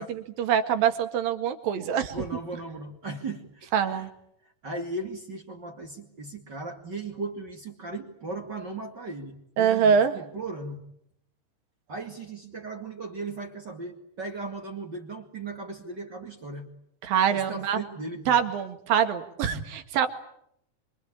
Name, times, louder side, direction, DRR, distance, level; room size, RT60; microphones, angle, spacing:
voice 1, 0.0-2.2 3.7-4.1 9.6-10.1 17.0-17.8 18.3-20.1, right 8 dB, 80° right, 7 dB, 3.7 m, -24 dB
voice 2, 2.1-4.1 4.6-10.8 11.9-16.7 17.3-18.4, right 2 dB, 35° right, 3 dB, 2.4 m, -37 dB
26.0 x 26.0 x 8.7 m, 0.73 s
omnidirectional pair, 4.0 m